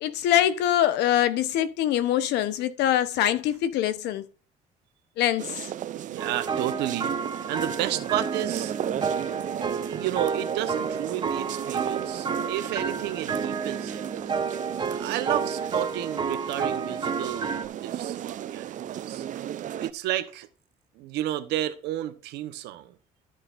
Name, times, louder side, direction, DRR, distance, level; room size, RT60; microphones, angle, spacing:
voice 1, 0.0-4.2 5.2-5.7, left 11 dB, 85° left, 1.0 m, -24 dB
sound 1, 5.4-19.9, right 11 dB, 50° right, 0.5 m, -35 dB
voice 2, 6.0-7.2 7.5-8.7 9.9-14.0 15.0-19.4 19.8-20.5 21.0-22.9, right 13 dB, 90° right, 1.1 m, -32 dB
sound 2, 6.2-17.6, right 5 dB, 30° right, 0.9 m, -31 dB
13.5 x 6.7 x 2.6 m
cardioid pair, 110°, 17 cm